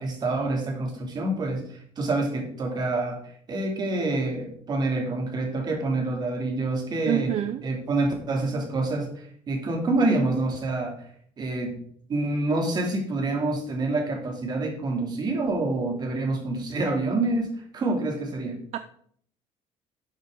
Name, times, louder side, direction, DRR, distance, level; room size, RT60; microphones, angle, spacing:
voice 1, 0.0-3.2 3.5-7.3 7.6-9.1 9.5-10.9 11.4-11.7 12.1-18.6, right 2 dB, 35° right, 2 dB, 2.7 m, -27 dB
voice 2, 7.1-7.6 18.7-18.8, right 12 dB, 60° right, 11 dB, 0.5 m, -26 dB
12.0 x 7.4 x 3.8 m, 0.62 s
cardioid pair, 145°, 12 cm